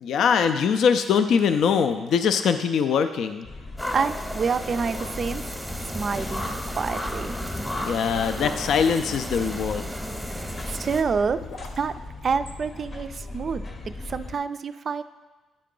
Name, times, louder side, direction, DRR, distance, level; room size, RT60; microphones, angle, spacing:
voice 1, 0.0-3.5 7.8-9.9, left 6 dB, 70° left, 8 dB, 0.3 m, -22 dB
sound 1, 1.5-2.2 2.4-2.5 2.9-3.1 3.8-3.9 4.6-5.5 7.0-9.7 11.0-13.2 13.5-13.6, left 3 dB, 85° left, 0.9 m, -43 dB
sound 2, 3.4-14.4, left 2 dB, 40° left, 0.7 m, -38 dB
sound 3, 3.8-11.0, equal, ahead, 0.8 m, -33 dB
voice 2, 3.9-5.4 5.8-6.5 6.8-7.3 10.2-11.4 11.8-11.9 12.2-15.0, right 5 dB, 45° right, 12 dB, 0.3 m, -28 dB
9.4 x 4.6 x 3.8 m, 1.2 s
cardioid pair, 90°, 0 cm